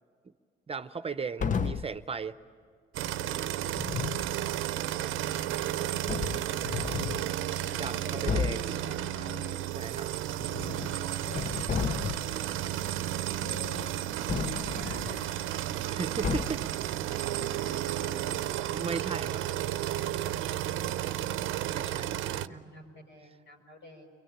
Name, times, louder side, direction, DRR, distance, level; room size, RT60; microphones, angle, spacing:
voice 1, 0.7-2.4 7.7-8.7 9.8-10.1 15.9-16.6 18.7-19.4 21.7-22.6, right 5 dB, 30° right, 11 dB, 0.7 m, -36 dB
sound 1, 1.4-2.0 3.7-4.3 5.5-5.6 6.1-7.3 7.8-7.9 8.3-8.7 10.3-11.0 11.3-12.4 14.3-15.3 16.2-16.8, left 6 dB, 40° left, 0.7 m, -33 dB
sound 2, 2.9-22.5, right 12 dB, 85° right, 0.6 m, -33 dB
voice 2, 4.0-5.1 5.7-7.2 7.6-9.5 10.6-11.7 12.2-12.9 13.4-14.0 14.5-15.3 16.5-16.7 17.2-18.5 20.7-21.5 21.8-24.1, left 2 dB, 75° left, 2 dB, 5.7 m, -49 dB
29.5 x 22.5 x 8.9 m, 2.1 s
cardioid pair, 90°, 20 cm